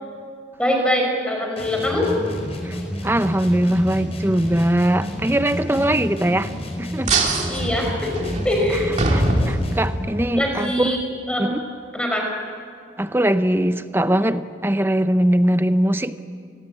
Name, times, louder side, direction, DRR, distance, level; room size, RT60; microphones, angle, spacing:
voice 1, 0.6-2.1 7.5-9.0 10.3-11.0 11.3-11.5 11.9-12.3, left 1 dB, 5° left, 1 dB, 5.2 m, -23 dB
sound 1, 1.6-10.0, equal, 35° left, 4.5 m, -30 dB
voice 2, 3.0-6.5 6.8-7.2 8.7-8.8 9.1-11.0 11.4-11.6 13.0-16.2, right 1 dB, 10° right, 11 dB, 0.7 m, -21 dB
vidrio roto, 7.1-10.3, right 2 dB, 40° right, 2.8 m, -23 dB
29.5 x 19.5 x 8.7 m, 2.3 s
head